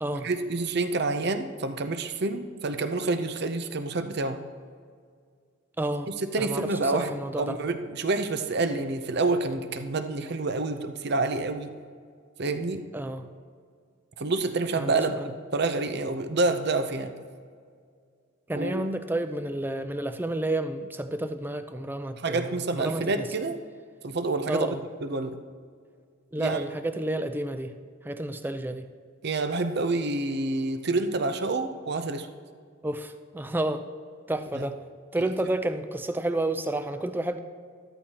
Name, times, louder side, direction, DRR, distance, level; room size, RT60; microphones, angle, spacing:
voice 1, 0.1-4.4 6.2-11.8 12.4-12.8 14.2-17.2 18.5-18.8 22.2-23.6 24.0-24.8 25.0-25.4 26.4-26.6 29.2-32.3 34.5-34.6 35.2-35.3, right 3 dB, 55° right, 9 dB, 0.7 m, -28 dB
voice 2, 5.8-6.1 6.4-7.6 12.9-13.3 14.8-15.3 18.5-23.3 24.5-24.8 26.3-27.7 28.0-28.9 32.8-33.8 34.3-34.8 35.1-37.4, right 1 dB, 10° right, 9 dB, 0.5 m, -30 dB
13.5 x 13.0 x 2.9 m, 2.1 s
head